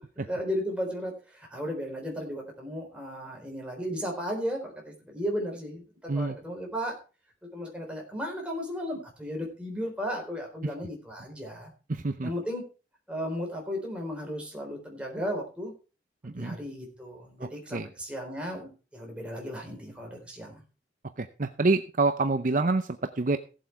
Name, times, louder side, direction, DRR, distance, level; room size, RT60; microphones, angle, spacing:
voice 1, 0.0-5.8 6.1-6.9 7.5-11.7 12.2-12.6 13.1-15.7 16.2-20.6, equal, 5° right, 0 dB, 4.0 m, -35 dB
voice 2, 11.9-12.3 16.2-16.6 17.4-17.9 21.2-23.4, right 3 dB, 45° right, 9 dB, 0.6 m, -27 dB
16.5 x 7.6 x 4.6 m, 0.34 s
head